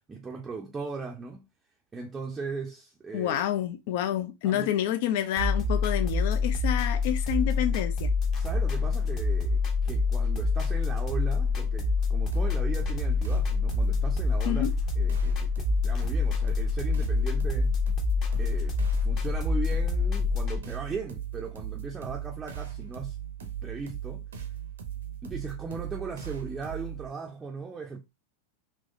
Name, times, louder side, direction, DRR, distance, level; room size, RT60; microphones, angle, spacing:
voice 1, 0.1-1.5 1.9-3.4 4.4-4.8 8.4-14.7 15.0-17.7 18.4-24.3 25.2-28.0, right 4 dB, 15° right, 0.5 m, -38 dB
voice 2, 3.1-8.1 14.5-14.7, left 11 dB, 50° left, 0.5 m, -28 dB
sound 1, 5.4-20.6, left 4 dB, 30° left, 1.0 m, -26 dB
sound 2, 12.3-27.1, right 10 dB, 65° right, 0.7 m, -38 dB
3.4 x 3.0 x 2.6 m
figure-of-eight pair, 90°, 0 cm